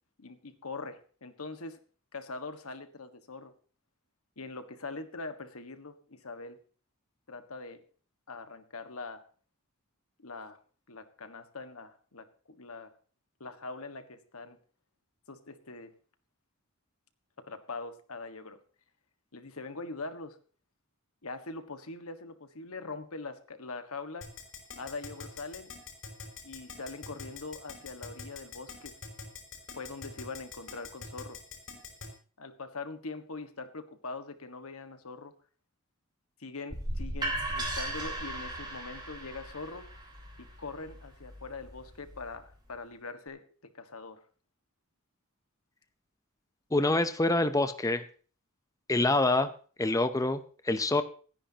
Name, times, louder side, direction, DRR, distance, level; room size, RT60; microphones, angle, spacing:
voice 1, 0.2-1.8 2.1-3.5 4.4-6.6 7.3-7.8 8.3-9.2 10.2-10.6 10.9-12.9 13.4-14.6 15.3-15.9 17.5-18.6 19.3-20.4 21.2-24.3 24.8-25.7 26.4-29.0 29.7-31.4 32.4-35.3 36.4-39.9 40.4-43.4 43.7-44.2, left 3 dB, 85° left, 8 dB, 1.6 m, -42 dB
Keyboard (musical), 24.2-32.1, left 5 dB, 65° left, 6.0 m, -43 dB
sound 1, 36.7-42.5, right 1 dB, 20° right, 4.7 m, -37 dB
voice 2, 46.7-48.0 48.9-49.5 49.8-51.0, left 2 dB, 15° left, 10 dB, 0.7 m, -26 dB
27.5 x 10.0 x 2.9 m, 0.41 s
head